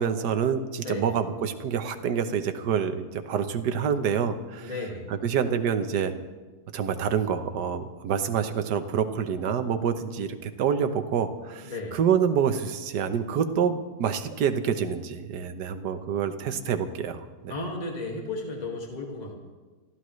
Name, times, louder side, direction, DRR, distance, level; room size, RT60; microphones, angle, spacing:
voice 1, 0.0-4.7 5.1-6.1 6.7-17.5, right 7 dB, 75° right, 8 dB, 1.6 m, -27 dB
voice 2, 0.8-1.1 4.6-5.1 11.6-12.0 17.5-19.4, left 2 dB, 25° left, -1 dB, 2.0 m, -34 dB
25.5 x 15.0 x 3.2 m, 1.3 s
omnidirectional pair, 1.8 m